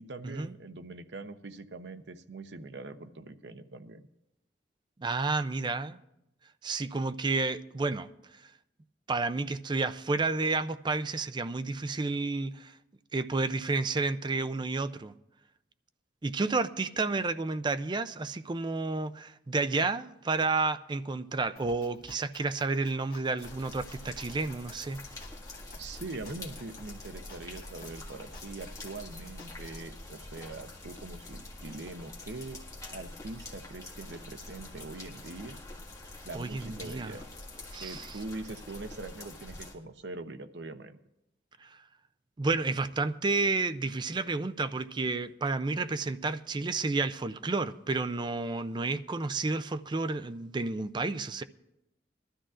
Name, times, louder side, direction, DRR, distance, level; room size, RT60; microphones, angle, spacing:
voice 1, 0.0-4.0 25.8-32.6 32.9-35.6 36.2-37.2 37.8-41.0, right 2 dB, 70° right, 0.8 m, -43 dB
voice 2, 5.0-6.0 6.6-8.1 9.1-12.7 13.1-15.1 16.2-25.0 36.3-37.1 37.7-38.1 41.6-41.8 42.4-51.4, right 3 dB, 25° right, 0.4 m, -31 dB
sound 1, 21.6-29.8, left 2 dB, 55° left, 1.9 m, -54 dB
sound 2, 23.4-39.7, left 2 dB, 20° left, 1.7 m, -45 dB
21.5 x 12.5 x 2.5 m
head